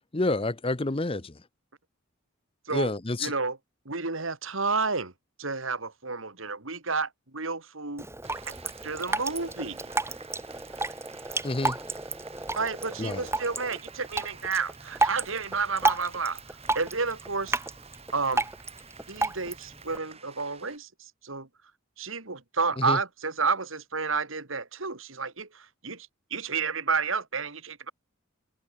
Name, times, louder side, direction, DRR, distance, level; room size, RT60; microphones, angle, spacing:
voice 1, 0.1-1.3 2.7-3.3 11.4-11.8 13.0-13.2 22.8-23.0, left 2 dB, 25° left, 0.8 m, -28 dB
voice 2, 3.2-3.6 3.8-5.1 5.4-8.1 8.5-8.6 8.8-9.8 12.6-16.4 16.7-17.6 18.1-18.4 19.1-21.5 22.0-27.9, right 4 dB, 70° right, 2.9 m, -31 dB
Drip, 8.0-20.0, right 3 dB, 10° right, 1.9 m, -32 dB
sound 1, 8.2-20.8, right 5 dB, 30° right, 3.1 m, -50 dB
open air
head